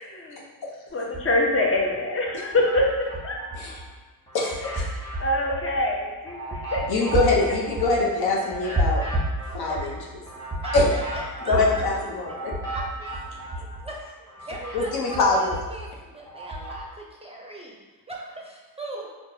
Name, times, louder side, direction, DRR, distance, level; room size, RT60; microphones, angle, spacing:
voice 1, 0.1-0.4 0.9-3.4 4.9-7.1, left 1 dB, 30° left, -1 dB, 0.8 m, -25 dB
sound 1, 1.0-1.8 2.3-3.9 4.3-14.0 14.3-16.8, right 1 dB, 10° left, 1.2 m, -31 dB
voice 2, 4.3-5.0 6.9-9.0 9.5-9.9 10.7-10.9 11.5-12.5 14.7-15.5, left 3 dB, 55° left, -3 dB, 0.9 m, -23 dB
voice 3, 10.6-11.8 12.7-13.4 13.8-14.2 14.5-17.8 18.1-19.1, right 1 dB, 15° right, -2 dB, 0.6 m, -39 dB
3.8 x 2.4 x 2.8 m, 1.2 s
hypercardioid pair, 50°, 44 cm